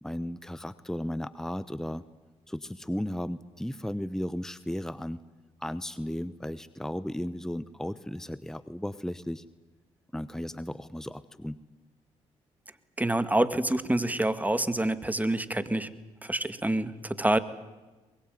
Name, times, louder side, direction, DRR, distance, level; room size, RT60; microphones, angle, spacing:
voice 1, 0.0-2.0 2.5-5.2 5.6-9.4 10.1-11.6, left 1 dB, 5° left, 15 dB, 1.0 m, -35 dB
voice 2, 13.0-15.9 16.3-16.9 17.2-17.4, right 1 dB, 10° right, 13 dB, 2.0 m, -26 dB
23.0 x 21.5 x 9.4 m, 1.2 s
supercardioid pair, 55°, 13 cm